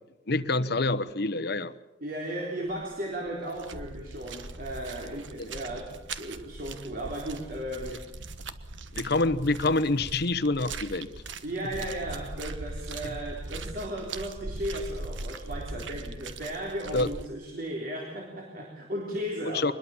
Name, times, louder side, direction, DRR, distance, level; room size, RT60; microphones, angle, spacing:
voice 1, 0.3-1.7 5.4-5.5 8.9-11.1 13.0-13.1 16.9-17.1 19.5-19.7, left 2 dB, 60° left, 14 dB, 1.0 m, -26 dB
voice 2, 2.0-8.1 11.4-19.7, right 1 dB, 50° right, 0 dB, 3.6 m, -35 dB
sound 1, 2.7-3.0 3.3-17.3, right 3 dB, 85° right, 1.4 m, -40 dB
24.5 x 21.0 x 7.2 m, 0.97 s
head